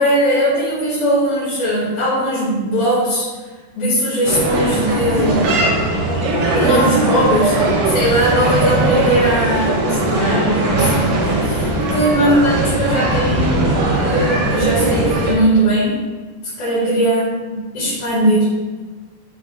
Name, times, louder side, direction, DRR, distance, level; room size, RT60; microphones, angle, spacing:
voice 1, 0.0-3.3 3.8-5.5 6.5-7.6 7.9-16.0 16.6-17.3 17.7-18.5, right 1 dB, 65° left, -10 dB, 3.2 m, -19 dB
sound 1, 4.3-15.3, right 2 dB, 90° right, 3.5 m, -18 dB
10.0 x 4.1 x 2.3 m, 1.3 s
omnidirectional pair, 4.6 m